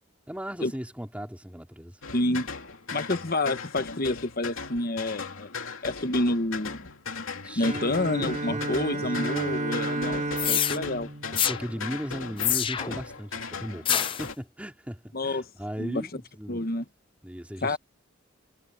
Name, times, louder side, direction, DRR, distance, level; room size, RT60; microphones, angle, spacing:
voice 1, 0.3-2.0 7.4-8.1 8.4-8.8 11.3-16.6 17.2-17.8, equal, 5° right, 3.9 m, -37 dB
sound 1, 2.0-14.3, left 5 dB, 90° left, 2.7 m, -38 dB
voice 2, 2.1-2.5 2.9-5.5 5.8-6.9 7.6-10.2 10.5-11.1 15.1-15.5 15.8-16.1 16.5-16.8 17.6-17.8, left 2 dB, 45° left, 1.2 m, -28 dB
Bowed string instrument, 7.6-12.3, right 2 dB, 35° right, 1.7 m, -33 dB
sound 2, 10.4-10.8 11.4-11.6 12.4-13.0 13.9-14.3, left 10 dB, 25° left, 0.4 m, -26 dB
head